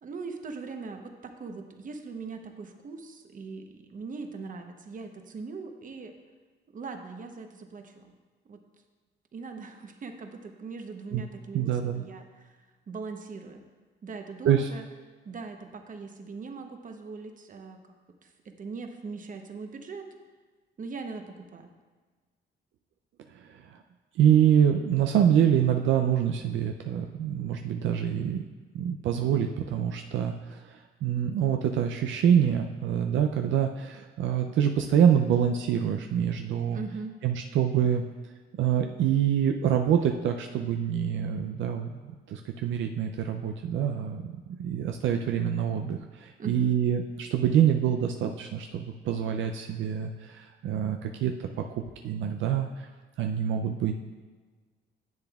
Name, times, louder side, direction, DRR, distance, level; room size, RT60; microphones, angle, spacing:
voice 1, 0.0-6.1 6.7-8.1 8.4-8.6 9.3-12.6 12.9-13.6 14.0-14.9 15.2-17.8 18.2-20.1 20.8-21.7 36.7-37.2 46.4-46.8, right 4 dB, 40° right, 5 dB, 0.9 m, -40 dB
voice 2, 11.5-12.0 14.4-14.7 23.3-23.8 24.2-28.4 28.7-36.8 37.2-38.0 38.5-44.3 44.6-52.9 53.2-54.0, right 9 dB, 75° right, 4 dB, 0.5 m, -26 dB
10.5 x 7.8 x 2.4 m, 1.4 s
cardioid pair, 90°, 20 cm